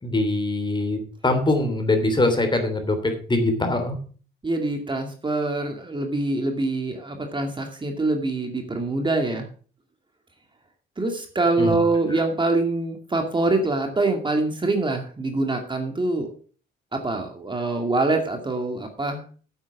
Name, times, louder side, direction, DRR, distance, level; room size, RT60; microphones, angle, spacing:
voice 1, 0.0-1.0 1.2-4.0 11.6-11.8 12.0-12.1, left 2 dB, 25° left, 6 dB, 3.2 m, -23 dB
voice 2, 4.4-9.5 11.0-16.3 16.9-19.2, right 2 dB, 25° right, 4 dB, 2.2 m, -24 dB
9.5 x 8.3 x 6.0 m, 0.41 s
cardioid pair, 90°, 20 cm